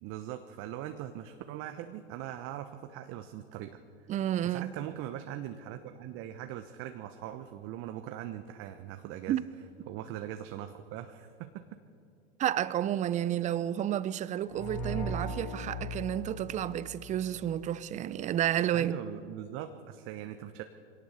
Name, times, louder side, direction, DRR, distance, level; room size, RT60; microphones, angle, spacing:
voice 1, 0.0-3.8 4.4-9.4 9.9-11.6 18.7-20.6, right 12 dB, 40° right, 1.0 m, -41 dB
voice 2, 4.1-4.7 9.3-9.4 12.4-18.9, right 11 dB, 20° right, 0.6 m, -31 dB
sound 1, 14.5-17.3, equal, 45° left, 6.1 m, -37 dB
23.0 x 18.0 x 6.5 m
hypercardioid pair, 105°, 33 cm